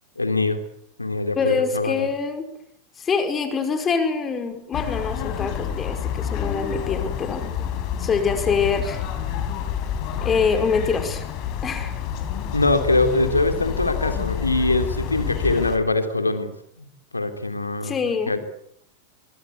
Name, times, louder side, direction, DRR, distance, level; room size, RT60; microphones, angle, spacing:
voice 1, 0.2-0.6 1.0-2.1 12.5-16.5 16.8-16.9 17.1-18.4, left 2 dB, 80° left, 7 dB, 3.2 m, -23 dB
voice 2, 1.4-2.4 3.0-7.5 8.0-9.0 10.2-11.2 11.6-11.9 17.8-18.3, left 5 dB, 20° left, 7 dB, 5.3 m, -24 dB
sound 1, 4.7-15.8, left 9 dB, 40° left, 4.6 m, -28 dB
25.0 x 24.5 x 8.4 m, 0.72 s
figure-of-eight pair, 90°, 0 cm